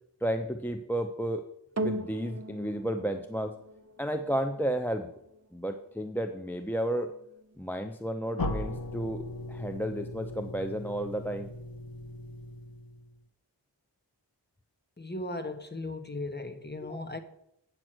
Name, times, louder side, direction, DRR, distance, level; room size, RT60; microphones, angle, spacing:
voice 1, 0.2-1.4 1.8-3.5 4.0-5.1 5.5-7.1 7.6-9.2 9.5-11.5 16.8-17.0, right 1 dB, 5° left, 6 dB, 0.5 m, -32 dB
sound 1, 1.8-10.3 11.0-11.1, right 1 dB, 35° right, 0.8 m, -42 dB
sound 2, 8.4-13.2, left 2 dB, 50° left, 0.9 m, -38 dB
voice 2, 15.0-17.2, left 2 dB, 25° left, 7 dB, 1.1 m, -37 dB
8.8 x 6.4 x 6.1 m, 0.80 s
wide cardioid pair, 50°, 44 cm